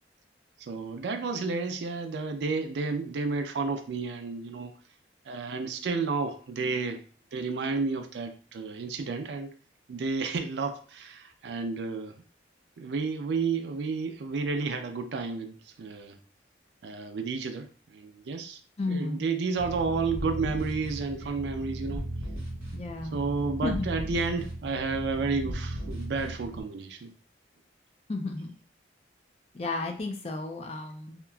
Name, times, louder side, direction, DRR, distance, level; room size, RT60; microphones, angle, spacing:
voice 1, 0.6-4.7 5.3-7.0 7.3-9.5 9.9-12.2 12.8-16.2 16.8-18.6 18.9-22.1 23.1-27.1, right 4 dB, 65° right, 6 dB, 0.4 m, -31 dB
voice 2, 18.8-19.2 22.7-23.2 23.6-23.9 28.1-28.5 29.5-31.2, left 2 dB, 35° left, 4 dB, 0.4 m, -33 dB
sound 1, 19.6-26.6, right 1 dB, 15° right, 1.5 m, -36 dB
2.9 x 2.4 x 2.2 m, 0.42 s
head